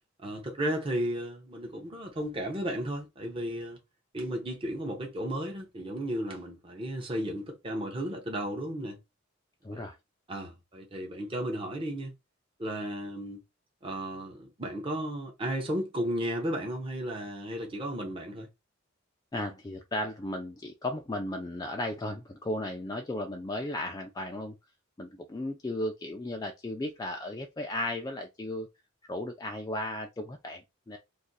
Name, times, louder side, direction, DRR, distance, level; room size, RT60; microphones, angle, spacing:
voice 1, 0.2-3.8 4.1-9.0 9.7-9.8 10.3-12.1 12.6-13.4 13.8-18.5, equal, 25° right, 0.7 m, -34 dB
voice 2, 9.6-9.9 19.3-24.6 25.0-28.7 29.1-31.0, left 1 dB, 20° left, 0.3 m, -35 dB
2.6 x 2.5 x 3.9 m
head